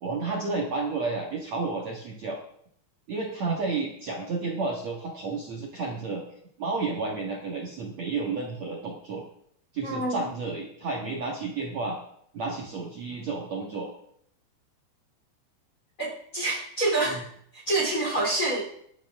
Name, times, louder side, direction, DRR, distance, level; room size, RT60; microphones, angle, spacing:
voice 1, 0.0-2.4 3.1-6.2 6.6-9.2 9.7-12.0 12.3-13.9 17.0-17.2, right 3 dB, 55° right, -1 dB, 2.1 m, -31 dB
voice 2, 9.8-10.2 16.0-17.2 17.7-18.6, right 2 dB, 20° left, -2 dB, 2.6 m, -26 dB
19.0 x 11.5 x 3.7 m, 0.68 s
omnidirectional pair, 5.3 m